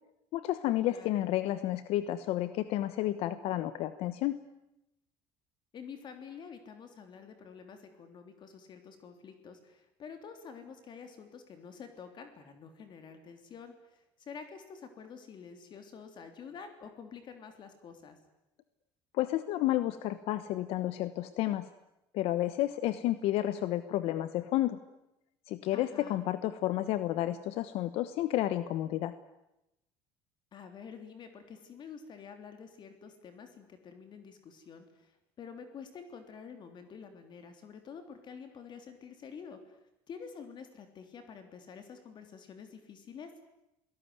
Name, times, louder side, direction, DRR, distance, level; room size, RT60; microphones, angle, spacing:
voice 1, 0.3-4.4 19.1-21.7 22.1-24.8 25.5-29.1, left 14 dB, 70° left, 13 dB, 1.2 m, -31 dB
voice 2, 0.8-1.2 5.7-18.2 25.7-26.2 30.5-39.8 40.1-43.3, left 6 dB, 45° left, 7 dB, 3.4 m, -48 dB
28.0 x 18.0 x 9.6 m, 0.89 s
cardioid pair, 105°, 10 cm